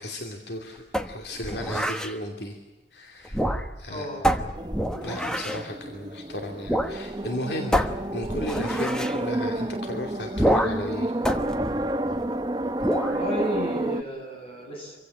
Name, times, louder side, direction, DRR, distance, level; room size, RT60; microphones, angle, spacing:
voice 1, 0.0-2.6 2.9-3.5 3.8-4.1 5.0-7.8 8.1-11.1, left 1 dB, 65° left, 3 dB, 2.7 m, -35 dB
sound 1, 0.9-2.1 3.2-3.9 4.2-5.7 6.7-7.0 7.2-7.3 7.7-9.2 10.4-10.9 11.2-12.4 12.8-13.2, equal, 5° left, 1.1 m, -27 dB
voice 2, 3.9-4.3 13.0-14.9, equal, 30° left, 0 dB, 7.8 m, -32 dB
sound 2, 4.6-14.0, right 1 dB, 20° right, 0.8 m, -30 dB
26.0 x 16.0 x 9.9 m, 1.2 s
head